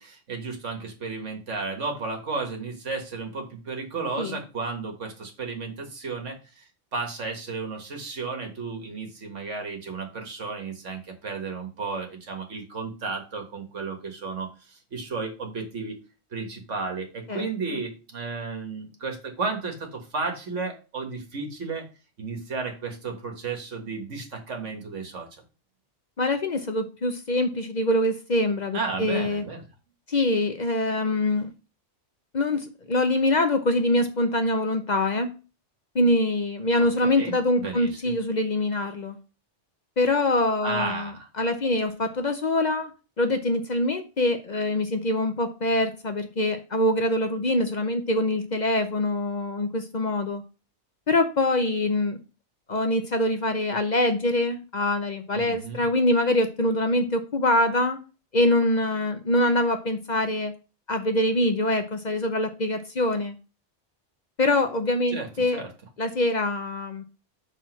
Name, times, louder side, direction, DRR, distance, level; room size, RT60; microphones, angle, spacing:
voice 1, 0.0-6.6 6.9-16.0 16.3-21.9 22.2-25.3 28.7-29.6 36.8-38.1 40.6-41.3 55.3-55.9 65.1-65.7, right 4 dB, 80° right, 3 dB, 1.9 m, -33 dB
voice 2, 26.2-29.4 30.1-31.5 32.3-35.3 35.9-39.2 40.0-42.9 43.2-50.4 51.1-52.2 52.7-58.0 58.3-60.5 60.9-63.3 64.4-65.6 66.0-67.0, left 1 dB, 45° left, 7 dB, 0.8 m, -24 dB
6.0 x 4.1 x 5.9 m, 0.32 s
omnidirectional pair, 1.2 m